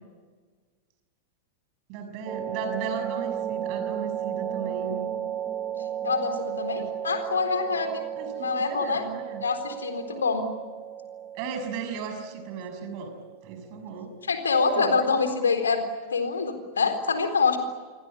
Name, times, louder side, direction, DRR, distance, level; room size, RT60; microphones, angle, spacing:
voice 1, 1.9-5.1 6.8-6.9 8.2-9.5 11.3-13.1 13.4-14.1 14.8-15.1, right 5 dB, 45° right, 7 dB, 6.3 m, -36 dB
sound 1, 2.3-13.8, right 10 dB, 25° right, 1.3 m, -34 dB
voice 2, 6.0-8.0 8.4-9.0 9.4-10.4 14.3-15.8 16.1-17.6, left 4 dB, 70° left, 7 dB, 4.0 m, -25 dB
29.0 x 22.5 x 8.6 m, 1.4 s
figure-of-eight pair, 90°, 0 cm